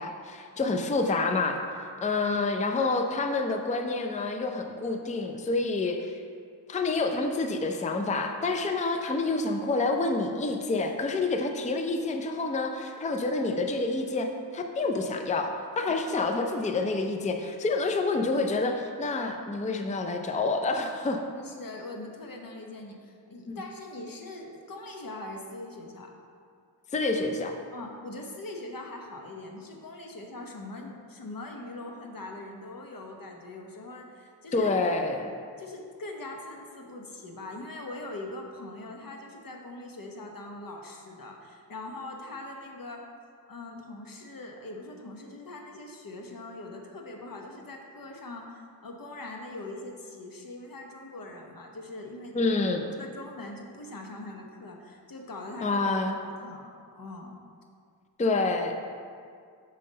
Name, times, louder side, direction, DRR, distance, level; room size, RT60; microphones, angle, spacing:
voice 1, 0.0-1.6 2.0-6.2 6.7-14.3 14.5-21.2 23.5-23.6 26.9-27.6 34.5-35.3 52.3-52.8 55.6-56.2 58.2-58.7, left 3 dB, 15° left, 4 dB, 0.4 m, -28 dB
voice 2, 21.4-26.1 27.7-34.7 35.6-43.1 43.5-52.3 53.0-55.8 56.2-57.4, left 2 dB, 50° left, 2 dB, 0.9 m, -42 dB
5.6 x 3.6 x 5.1 m, 2.2 s
cardioid pair, 50°, 44 cm